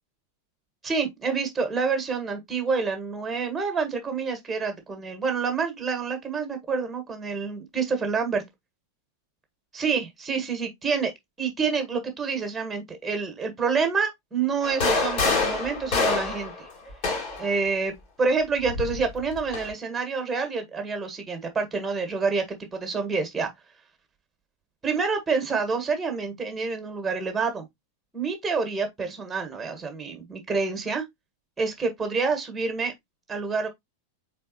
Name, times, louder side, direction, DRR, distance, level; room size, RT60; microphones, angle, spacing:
voice 1, 0.8-8.4 9.7-11.1 11.4-16.7 17.4-22.4 22.7-23.5 24.8-27.6 28.1-31.0 31.6-32.9 33.3-33.7, right 5 dB, 15° right, 1.6 m, -27 dB
sound 1, 14.6-17.5 18.6-19.7, left 3 dB, 45° left, 2.1 m, -26 dB
4.3 x 4.1 x 2.9 m
figure-of-eight pair, 90°, 0 cm